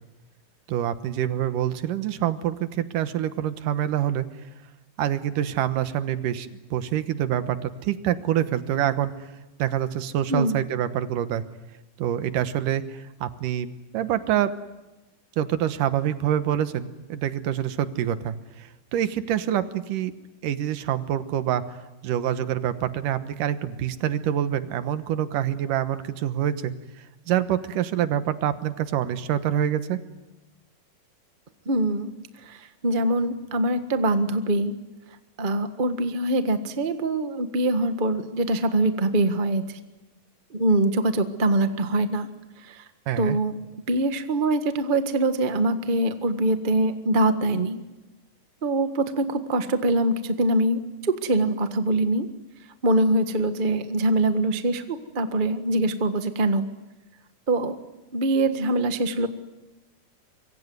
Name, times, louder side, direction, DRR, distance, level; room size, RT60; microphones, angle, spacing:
voice 1, 0.7-4.3 5.0-9.1 9.6-11.4 12.0-14.5 15.4-20.1 20.4-26.7 27.3-30.0 43.1-43.4, right 10 dB, 80° right, 12 dB, 2.8 m, -26 dB
voice 2, 31.6-32.1 32.4-34.7 35.4-39.8 40.5-42.3 42.6-42.8 43.2-43.6 43.9-47.8 48.6-52.3 52.8-56.7 57.5-57.8 58.1-59.3, right 1 dB, 50° right, 9 dB, 0.6 m, -23 dB
25.0 x 23.5 x 9.5 m, 1.0 s
omnidirectional pair, 3.7 m